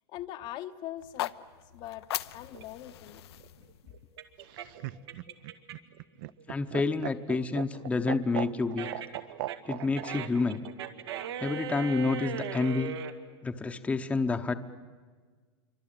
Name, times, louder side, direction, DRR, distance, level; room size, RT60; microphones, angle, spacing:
voice 1, 0.1-1.3 1.6-2.1 2.3-3.2, left 13 dB, 35° left, 8 dB, 0.9 m, -41 dB
sound 1, 1.0-5.1, left 13 dB, 85° left, 0.9 m, -40 dB
sound 2, 2.5-6.0 6.4-13.1, right 8 dB, 90° right, 2.2 m, -39 dB
Laughter, 4.4-10.1 11.4-12.0, right 16 dB, 55° right, 0.7 m, -38 dB
voice 2, 6.5-8.9 9.7-10.6 11.4-12.9 13.4-14.5, left 3 dB, 10° left, 6 dB, 0.9 m, -29 dB
26.5 x 24.5 x 9.0 m, 1.5 s
supercardioid pair, 155°, 13 cm